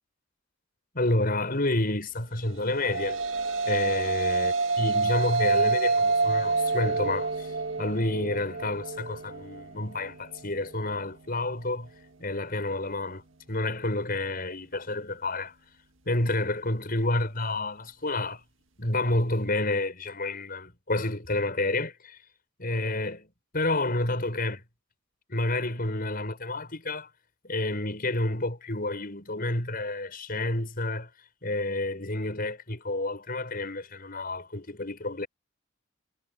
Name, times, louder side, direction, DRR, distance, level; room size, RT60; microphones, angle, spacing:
voice 1, 0.9-3.2 3.6-11.9 12.2-13.2 13.5-15.5 16.1-18.4 18.8-22.2 22.6-24.6 25.3-27.1 27.4-31.1 31.4-35.3, left 2 dB, 50° left, 6.4 m, -29 dB
sound 1, 2.5-11.1, right 3 dB, 75° right, 1.8 m, -28 dB
head